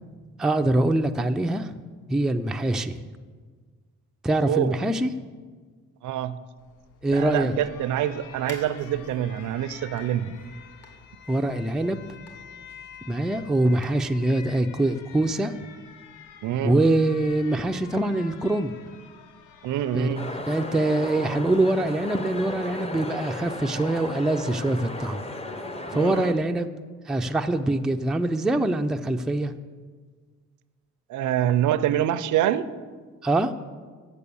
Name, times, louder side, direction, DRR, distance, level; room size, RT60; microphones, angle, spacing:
voice 1, 0.4-1.7 2.1-3.1 4.2-5.1 7.0-7.5 11.3-12.0 13.1-15.5 16.6-18.7 19.9-20.1 20.5-25.2 25.9-26.7 27.1-29.5 33.2-33.5, right 1 dB, ahead, 6 dB, 0.4 m, -24 dB
voice 2, 4.4-4.7 6.0-6.3 7.1-10.3 16.4-16.8 19.6-20.3 25.9-26.3 31.1-32.7, right 11 dB, 75° right, 14 dB, 0.5 m, -26 dB
Alarm, 6.6-23.8, left 7 dB, 85° left, 0.7 m, -49 dB
sound 1, 8.3-14.5, left 2 dB, 55° left, 2.3 m, -51 dB
sound 2, 20.1-26.3, left 2 dB, 20° left, 0.7 m, -35 dB
8.3 x 6.8 x 6.9 m, 1.5 s
cardioid pair, 90°, 30 cm